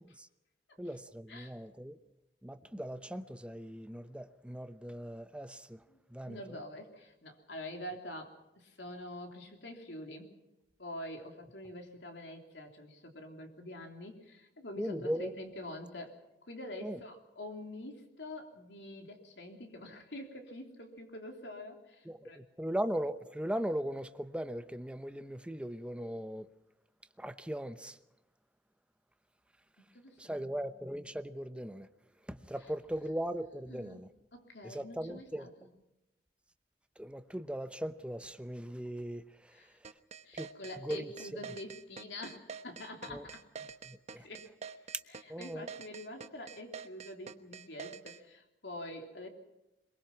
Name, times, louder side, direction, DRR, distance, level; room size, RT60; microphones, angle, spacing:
voice 1, 0.8-2.0 2.4-5.8 6.1-6.6 14.8-15.3 16.8-17.0 22.0-26.5 27.2-28.0 30.2-31.9 32.3-34.1 34.6-35.5 37.0-39.9 40.3-40.5 40.8-41.5 43.1-43.3 43.8-44.3 45.3-45.7, equal, 5° right, 0.8 m, -39 dB
voice 2, 6.2-10.3 10.8-16.2 16.5-22.4 29.8-30.5 33.7-34.0 34.3-35.7 39.5-39.8 40.2-43.4 44.1-44.4 45.1-49.3, left 1 dB, 75° left, 3.3 m, -46 dB
sound 1, 39.8-48.2, right 6 dB, 40° right, 1.0 m, -46 dB
23.0 x 22.0 x 5.9 m
head